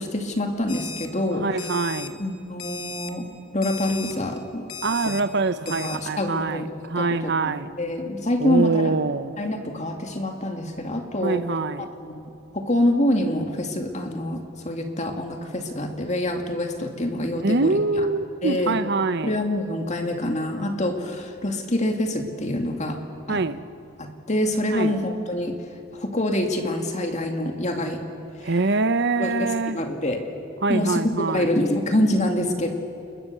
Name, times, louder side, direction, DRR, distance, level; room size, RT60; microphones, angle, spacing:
voice 1, 0.0-1.7 2.2-3.3 3.5-4.6 5.1-5.2 5.8-7.5 7.8-8.9 9.4-11.4 11.8-12.2 12.5-17.8 18.4-18.8 19.2-23.0 23.3-23.4 24.0-25.5 25.9-28.0 28.4-28.5 29.2-30.2 30.7-31.0 31.3-32.7, left 1 dB, 30° left, 2.3 m, -26 dB
Alarm, 0.7-1.1 1.6-2.1 2.6-3.1 3.6-4.1 4.7-5.2 5.7-6.0, left 6 dB, 85° left, 2.2 m, -36 dB
voice 2, 1.3-2.2 4.8-7.7 8.4-9.3 11.2-11.9 17.4-19.4 23.3-23.6 24.7-25.0 28.4-29.8 30.6-31.5, right 3 dB, 50° right, 0.8 m, -24 dB
29.5 x 21.5 x 6.8 m
head